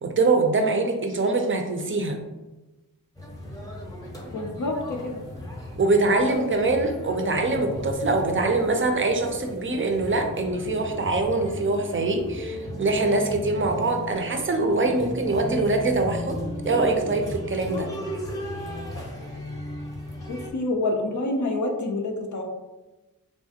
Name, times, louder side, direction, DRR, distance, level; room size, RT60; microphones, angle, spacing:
voice 1, 0.0-2.2 5.8-16.4 16.7-17.9, right 3 dB, 35° right, 4 dB, 0.5 m, -23 dB
sound 1, 3.1-20.5, equal, 10° left, 0.7 m, -36 dB
voice 2, 4.3-5.2 6.1-6.2 6.6-6.8 7.2-7.4 20.3-22.4, left 2 dB, 55° left, 2 dB, 0.5 m, -28 dB
3.3 x 2.4 x 2.7 m, 1.1 s
wide cardioid pair, 65°, 35 cm